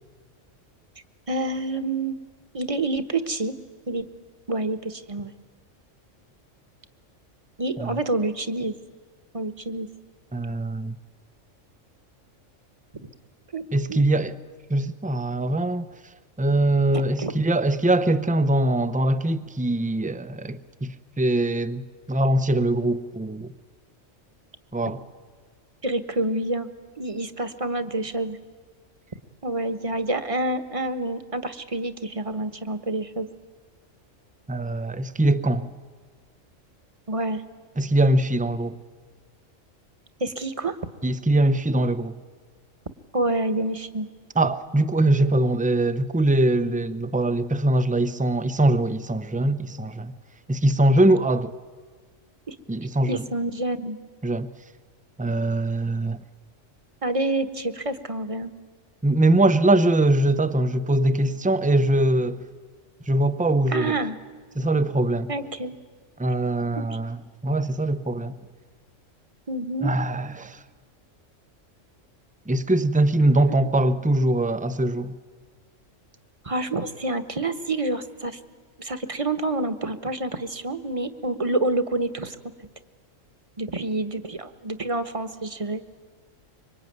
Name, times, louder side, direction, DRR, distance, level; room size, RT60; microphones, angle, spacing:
voice 1, 1.3-2.1 2.5-3.5 3.9-4.1 4.5-5.3 7.6-8.8 9.3-9.9 13.5-13.6 13.9-14.0 16.9-17.3 25.8-26.7 27.0-28.4 29.4-33.3 37.1-37.4 40.2-40.8 43.1-44.1 52.5-52.6 53.1-54.0 57.0-58.5 63.7-64.2 65.3-65.8 69.5-69.9 76.4-78.4 78.8-82.4 83.6-85.8, right 2 dB, 25° right, 1.3 m, -27 dB
voice 2, 10.3-11.0 13.7-14.4 14.7-15.9 16.4-23.5 24.7-25.0 34.5-35.7 37.8-38.8 41.0-42.2 44.3-50.1 50.5-51.5 52.7-53.2 54.2-54.5 55.2-56.2 59.0-62.4 63.1-64.0 64.6-65.3 66.2-68.4 69.8-70.6 72.5-75.1, right 1 dB, 10° right, 0.6 m, -22 dB
26.0 x 24.0 x 9.4 m
omnidirectional pair, 1.3 m